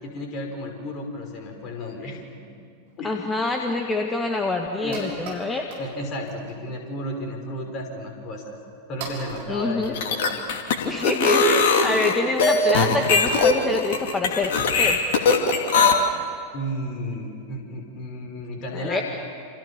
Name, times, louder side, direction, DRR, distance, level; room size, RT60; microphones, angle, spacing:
voice 1, 0.0-2.5 3.0-3.2 4.8-5.3 5.8-8.6 8.9-10.4 16.5-19.0, equal, 35° left, 3 dB, 5.7 m, -33 dB
sound 1, 2.9-3.0 3.6-3.7 3.9-4.0 4.3-4.4 4.7-5.9 6.2-6.6 7.0-7.2 7.9-8.0 8.6-8.7 9.0-10.5, right 4 dB, 50° right, 6.4 m, -39 dB
voice 2, 3.0-5.7 9.5-9.9 10.8-14.5 14.8-15.0 18.7-19.0, left 3 dB, 15° left, 3 dB, 2.0 m, -26 dB
sound 2, 9.8-15.9, left 4 dB, 55° left, 2.6 m, -20 dB
28.5 x 28.0 x 7.2 m, 2.3 s
figure-of-eight pair, 90°, 0 cm